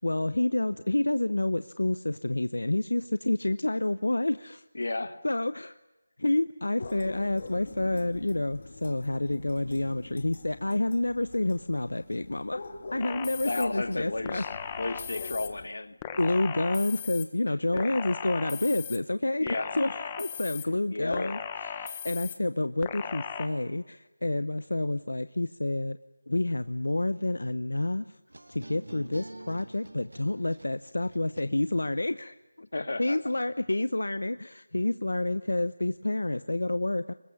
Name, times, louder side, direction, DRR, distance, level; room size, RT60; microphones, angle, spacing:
voice 1, 0.0-4.6 5.2-5.8 6.2-12.6 12.9-14.4 16.2-19.5 19.7-26.0 26.3-28.2 28.5-32.3 33.0-37.1, left 2 dB, 85° left, 13 dB, 0.8 m, -29 dB
voice 2, 4.7-5.2 13.5-16.0 17.7-17.8 19.4-19.8 20.9-21.4 32.7-33.2, left 2 dB, 65° left, 11 dB, 1.8 m, -33 dB
sound 1, 6.8-15.7, left 3 dB, 35° left, 2.6 m, -45 dB
sound 2, 13.0-13.7 14.2-15.5 16.0-17.2 17.8-19.0 19.5-20.6 21.1-22.4 22.8-23.5, left 8 dB, 15° left, 1.2 m, -37 dB
sound 3, 28.3-32.0, right 1 dB, 90° right, 1.6 m, -47 dB
25.5 x 20.5 x 9.8 m, 1.0 s
figure-of-eight pair, 175°, 0 cm